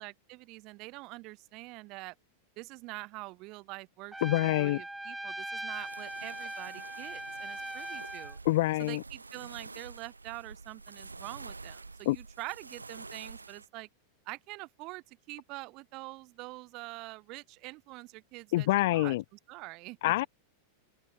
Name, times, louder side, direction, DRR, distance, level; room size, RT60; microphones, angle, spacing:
voice 1, 0.0-2.1 2.6-8.4 8.8-13.9 14.2-20.0, right 23 dB, 40° right, 4.8 m, -45 dB
Trumpet, 4.1-8.4, right 1 dB, 5° right, 0.9 m, -40 dB
voice 2, 4.2-4.8 8.5-9.0 12.1-12.2 18.5-19.2 20.0-20.3, left 18 dB, 55° left, 0.4 m, -26 dB
sound 1, 5.7-13.7, right 3 dB, 80° right, 1.5 m, -48 dB
open air
figure-of-eight pair, 90°, 0 cm